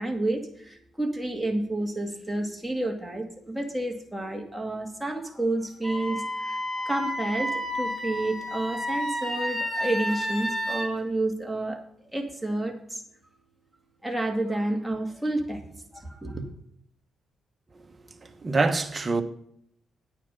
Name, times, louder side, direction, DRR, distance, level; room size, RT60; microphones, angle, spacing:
voice 1, 0.0-11.8 12.1-13.0 14.0-15.6 15.9-16.5, right 2 dB, 5° right, 2.3 m, -30 dB
Wind instrument woodwind instrument, 5.8-10.9, equal, 15° left, 2.6 m, -31 dB
voice 2, 18.2-19.2, right 3 dB, 30° right, 1.3 m, -25 dB
9.5 x 9.3 x 5.4 m
cardioid pair, 95°, 0 cm